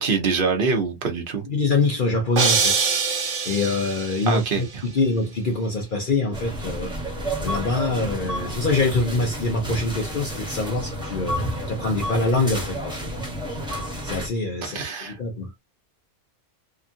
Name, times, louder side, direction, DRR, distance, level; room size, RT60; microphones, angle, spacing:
voice 1, 0.0-1.4 4.3-4.6 14.6-15.2, right 4 dB, 50° right, 1.0 m, -24 dB
voice 2, 1.5-2.9 3.5-6.9 7.4-13.1 14.0-14.8 15.1-15.5, left 3 dB, 50° left, 0.8 m, -24 dB
sound 1, 2.4-4.4, right 5 dB, 80° right, 1.2 m, -23 dB
sound 2, 6.3-14.3, equal, 5° right, 1.1 m, -31 dB
2.9 x 2.4 x 2.5 m
omnidirectional pair, 1.3 m